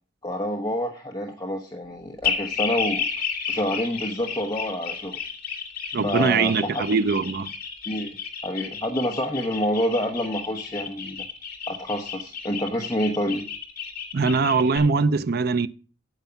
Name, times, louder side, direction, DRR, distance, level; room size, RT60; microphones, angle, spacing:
voice 1, 0.2-5.2 6.0-6.8 7.9-8.1 8.4-11.2 11.7-13.4, equal, 20° left, 1.0 m, -28 dB
sound 1, 2.2-14.8, left 7 dB, 50° left, 2.1 m, -32 dB
voice 2, 5.9-7.5 14.1-15.7, right 4 dB, 50° right, 0.5 m, -22 dB
9.1 x 8.2 x 5.7 m
head